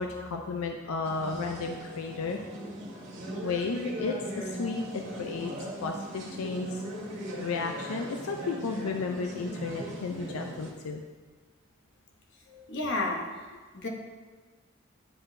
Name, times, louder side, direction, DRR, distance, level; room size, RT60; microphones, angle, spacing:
voice 1, 0.0-2.4 3.4-5.5 5.8-6.8 7.4-11.0, left 4 dB, 85° left, 3 dB, 0.4 m, -33 dB
sound 1, 1.0-10.7, right 1 dB, 60° right, 1.7 m, -39 dB
voice 2, 12.5-13.9, left 2 dB, 55° left, 1 dB, 0.9 m, -33 dB
9.9 x 3.9 x 2.6 m, 1.4 s
head